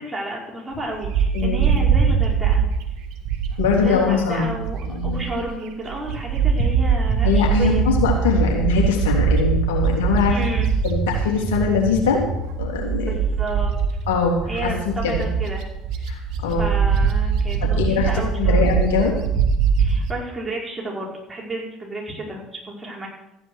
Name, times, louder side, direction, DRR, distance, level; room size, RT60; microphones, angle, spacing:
voice 1, 0.0-2.7 3.8-7.8 10.3-10.7 13.0-13.7 14.5-15.7 15.9-18.7 19.8-23.1, right 1 dB, 15° right, -3 dB, 5.6 m, -31 dB
Bird, 1.0-5.5 5.9-20.1, right 6 dB, 55° right, 1.7 m, -22 dB
voice 2, 1.3-1.6 3.6-4.5 4.8-5.2 7.2-10.4 10.8-12.2 12.6-13.1 14.1-14.7 15.0-15.3 16.1-16.7 17.6-19.1, left 5 dB, 70° left, 0 dB, 3.3 m, -22 dB
14.5 x 9.7 x 6.6 m, 0.89 s
figure-of-eight pair, 65°, 0 cm